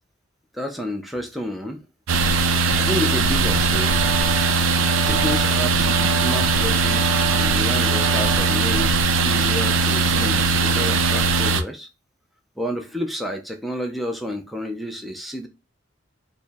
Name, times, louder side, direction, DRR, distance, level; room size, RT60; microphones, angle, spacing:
voice 1, 0.5-1.8 2.8-4.1 5.1-8.9 9.2-11.9 12.6-15.5, equal, ahead, 0.4 m, -30 dB
sound 1, 2.1-11.6, right 3 dB, 85° right, 0.5 m, -20 dB
sound 2, 3.5-8.9, right 7 dB, 20° right, 1.5 m, -32 dB
4.4 x 2.0 x 3.4 m
head